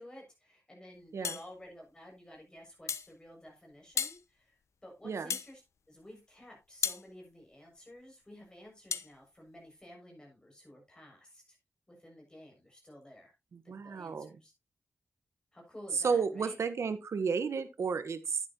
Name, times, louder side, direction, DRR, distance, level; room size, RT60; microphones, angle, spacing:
voice 1, 0.0-5.6 5.9-11.6 11.9-13.3 13.6-14.5 15.5-16.6, equal, 15° left, 6.9 m, -53 dB
sound 1, 1.2-1.5 2.9-3.1 4.0-4.2 5.3-5.5 6.8-7.0 8.9-9.1, left 6 dB, 75° left, 0.7 m, -33 dB
voice 2, 5.0-5.3 13.5-14.3 16.0-18.4, right 5 dB, 75° right, 1.2 m, -32 dB
10.5 x 9.8 x 3.0 m
wide cardioid pair, 90°, 5 cm